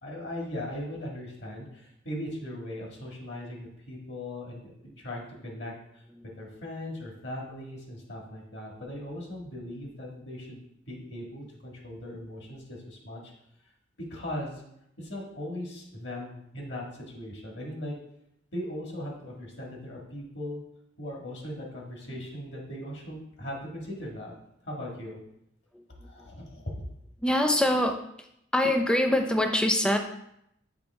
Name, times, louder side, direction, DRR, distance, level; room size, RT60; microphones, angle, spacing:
voice 1, 0.0-6.0 6.4-10.6 10.9-13.3 14.1-14.6 15.0-18.0 18.5-20.6 21.0-24.3 24.6-25.2 26.0-26.9, left 1 dB, 65° left, -1 dB, 1.7 m, -39 dB
voice 2, 27.2-28.0 28.5-30.0, left 1 dB, 5° left, 5 dB, 0.5 m, -23 dB
7.0 x 4.9 x 3.5 m, 0.77 s
head